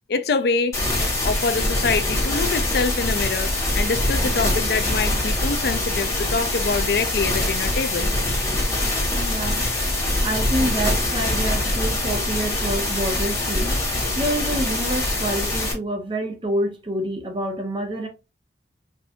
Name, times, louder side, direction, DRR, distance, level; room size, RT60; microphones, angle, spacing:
voice 1, 0.1-0.8 1.2-8.1, left 4 dB, 60° left, 0.4 m, -25 dB
sound 1, 0.7-15.7, left 1 dB, 20° left, 1.8 m, -23 dB
voice 2, 9.1-9.7 10.2-13.8 14.2-18.1, right 1 dB, 30° right, 1.0 m, -27 dB
4.4 x 3.2 x 2.6 m
head